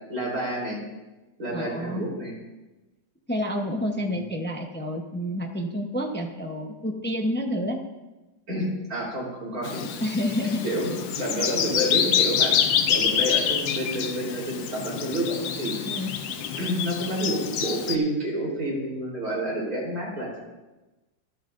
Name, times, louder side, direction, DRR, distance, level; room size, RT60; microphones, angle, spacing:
voice 1, 0.1-0.8 1.4-2.3 4.0-4.3 8.5-9.8 10.6-15.7 16.6-20.4, right 1 dB, 50° right, -4 dB, 4.2 m, -29 dB
voice 2, 1.5-2.1 3.3-7.8 10.0-10.6 15.8-16.1, left 1 dB, 15° left, 2 dB, 0.3 m, -29 dB
Bird vocalization bird call bird song, 9.6-18.0, left 8 dB, 85° left, 1.5 m, -26 dB
25.0 x 9.1 x 2.6 m, 1.1 s
omnidirectional pair, 2.0 m